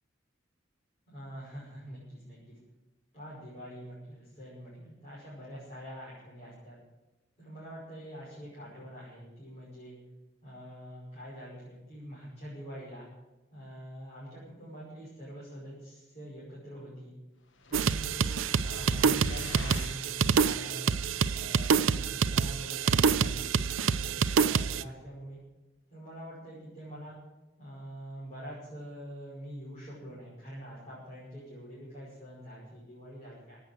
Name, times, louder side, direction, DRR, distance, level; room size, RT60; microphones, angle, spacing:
voice 1, 1.1-2.6 3.1-6.8 7.4-10.0 10.4-13.1 13.5-17.1 17.7-20.9 21.3-25.4 25.9-27.2 27.6-33.6, equal, 35° left, -8 dB, 6.1 m, -45 dB
sound 1, 17.6-20.3, left 2 dB, 70° left, 1.1 m, -43 dB
sound 2, 17.7-24.8, right 6 dB, 85° right, 0.6 m, -27 dB
16.5 x 9.1 x 7.9 m, 1.0 s
head